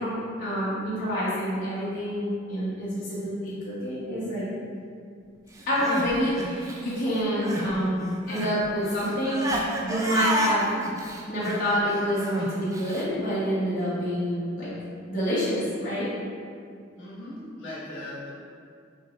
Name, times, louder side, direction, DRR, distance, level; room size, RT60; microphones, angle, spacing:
voice 1, 0.0-4.4 5.7-9.5 9.8-10.6 11.3-14.7 15.1-16.1, equal, 45° left, -11 dB, 1.0 m, -27 dB
Crying sobbing, 5.6-7.7 8.0-13.0, right 1 dB, 15° right, 0.3 m, -31 dB
voice 2, 17.0-18.3, left 1 dB, 70° left, -8 dB, 1.4 m, -38 dB
6.6 x 2.9 x 2.5 m, 2.3 s
head